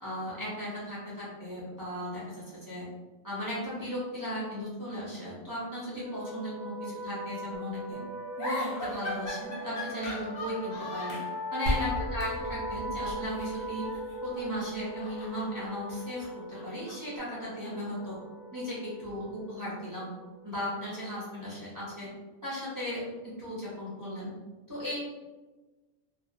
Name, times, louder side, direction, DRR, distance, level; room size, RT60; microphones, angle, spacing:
voice 1, 0.0-2.8 3.2-8.0 8.4-11.2 11.5-13.8 14.2-18.2 18.5-20.1 20.4-22.1 22.4-23.0 23.4-24.3 24.7-25.0, equal, 25° right, -9 dB, 0.4 m, -36 dB
sound 1, 6.0-21.4, equal, 55° left, 0.7 m, -40 dB
sound 2, 8.4-11.3 11.7-11.9 12.2-12.4 13.3-14.5 14.8-17.2, left 1 dB, 75° left, 0.4 m, -40 dB
sound 3, 11.7-15.6, left 1 dB, 80° right, 0.9 m, -37 dB
2.4 x 2.0 x 2.5 m, 1.2 s
omnidirectional pair, 1.3 m